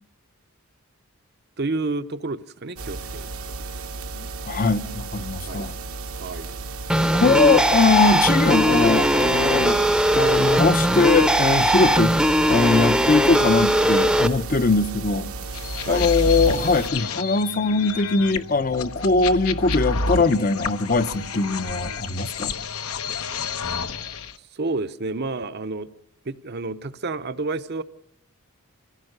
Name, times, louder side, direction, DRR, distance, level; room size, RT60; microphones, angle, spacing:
voice 1, 1.6-3.3 5.5-5.7 6.2-6.5 15.9-16.0 24.5-25.9 26.2-27.8, right 3 dB, 50° right, 0.8 m, -29 dB
sound 1, 2.8-16.9, right 3 dB, 70° right, 1.1 m, -34 dB
voice 2, 4.2-5.7 7.2-9.8 10.1-12.2 12.5-15.3 15.9-22.5, left 3 dB, 40° left, 0.7 m, -21 dB
sound 2, 6.9-14.3, right 1 dB, 5° right, 0.8 m, -19 dB
sound 3, 15.5-24.3, left 3 dB, 75° left, 1.1 m, -30 dB
25.5 x 16.5 x 6.6 m
head